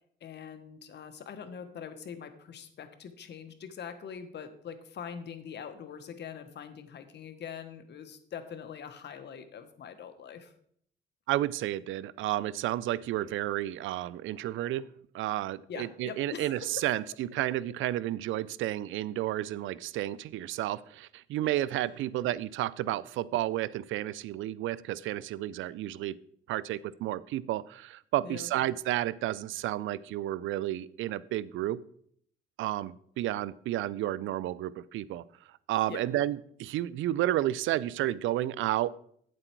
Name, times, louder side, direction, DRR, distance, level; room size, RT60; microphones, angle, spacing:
voice 1, 0.2-10.5 15.7-16.8 21.4-21.5 28.2-28.5 35.9-36.1, left 7 dB, 60° left, 10 dB, 1.2 m, -43 dB
voice 2, 11.3-14.9 15.1-26.2 26.5-31.8 32.6-35.2 35.7-38.9, right 14 dB, 80° right, 20 dB, 0.4 m, -31 dB
9.0 x 7.7 x 4.5 m, 0.65 s
cardioid pair, 90°, 20 cm